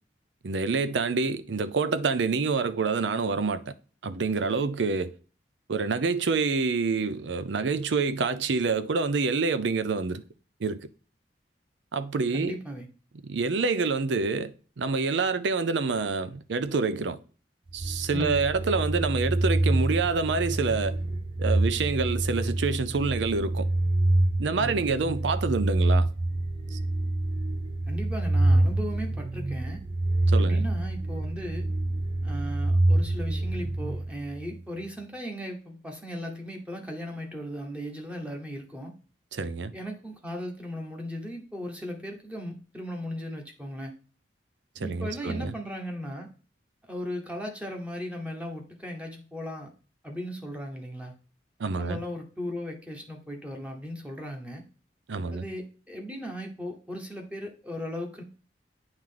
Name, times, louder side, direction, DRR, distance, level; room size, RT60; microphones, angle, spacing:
voice 1, 0.4-3.6 4.0-5.1 5.7-10.2 10.6-10.9 11.9-12.6 13.2-17.2 17.7-21.0 21.4-23.7 24.4-26.1 26.7-26.8 30.3-30.6 39.3-39.7 44.8-45.5 51.6-52.0 55.1-55.4, right 4 dB, 85° right, 0.5 m, -27 dB
voice 2, 12.3-12.9 18.1-18.5 24.5-24.9 27.9-29.8 30.4-31.7 32.2-39.0 39.7-43.9 44.8-46.3 46.9-49.7 50.0-51.1 51.8-54.6 55.3-58.2, equal, 5° right, 1.1 m, -37 dB
sound 1, 17.7-34.6, right 1 dB, 30° right, 0.4 m, -26 dB
8.7 x 3.2 x 3.8 m
head